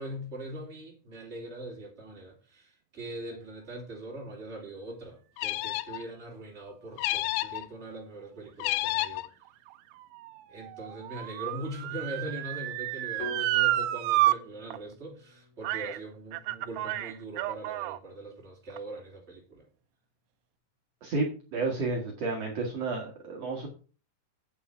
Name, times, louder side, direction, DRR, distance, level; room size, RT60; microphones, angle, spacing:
voice 1, 0.0-9.3 10.5-19.7, right 1 dB, 20° right, -1 dB, 3.5 m, -41 dB
sound 1, 5.4-6.0 7.0-7.7 8.6-9.3, left 17 dB, 80° left, 2.2 m, -30 dB
Motor vehicle (road) / Siren, 9.2-14.4 14.7-14.8 15.6-16.0 16.3-18.0 18.7-18.8, right 15 dB, 90° right, 1.6 m, -30 dB
sound 2, 13.2-17.3, left 1 dB, 55° left, 3.1 m, -46 dB
voice 2, 21.5-23.7, right 3 dB, 55° right, 0 dB, 2.5 m, -31 dB
8.8 x 6.9 x 5.7 m, 0.37 s
omnidirectional pair, 3.9 m